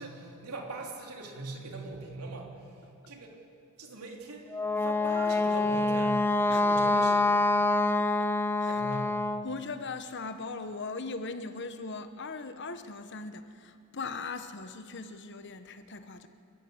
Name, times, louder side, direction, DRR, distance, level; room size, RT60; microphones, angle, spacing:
voice 1, 0.0-3.3 3.8-7.3 8.7-9.2, right 2 dB, 90° right, 0 dB, 3.5 m, -41 dB
Wind instrument woodwind instrument, 4.5-9.5, left 2 dB, 10° left, 0.7 m, -26 dB
voice 2, 8.0-8.3 8.6-8.8 9.4-16.3, left 3 dB, 55° left, 9 dB, 1.1 m, -39 dB
29.0 x 14.0 x 8.1 m, 2.6 s
head